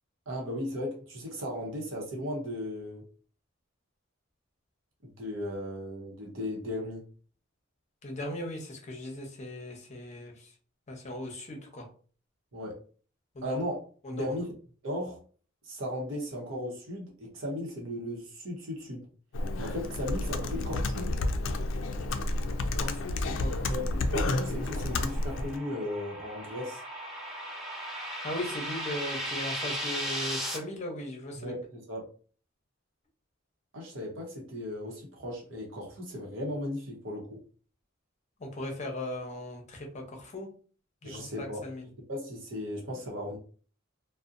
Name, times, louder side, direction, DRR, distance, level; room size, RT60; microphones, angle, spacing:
voice 1, 0.3-3.0 5.0-7.0 12.5-12.8 13.4-13.8 14.1-14.5 14.8-15.2 15.6-19.1 19.6-21.1 23.7-26.8 31.4-32.1 33.7-37.3 41.0-41.6 42.1-43.4, left 1 dB, 70° right, -2 dB, 0.8 m, -36 dB
voice 2, 8.0-10.5 10.9-11.9 13.3-13.6 14.0-14.4 22.8-23.7 28.2-31.5 38.4-40.5 41.0-41.8, left 1 dB, 35° left, 2 dB, 0.7 m, -38 dB
Computer keyboard, 19.3-25.6, left 2 dB, 65° left, 0.3 m, -30 dB
sound 1, 23.7-30.6, equal, ahead, 0.9 m, -37 dB
2.6 x 2.1 x 2.4 m, 0.41 s
head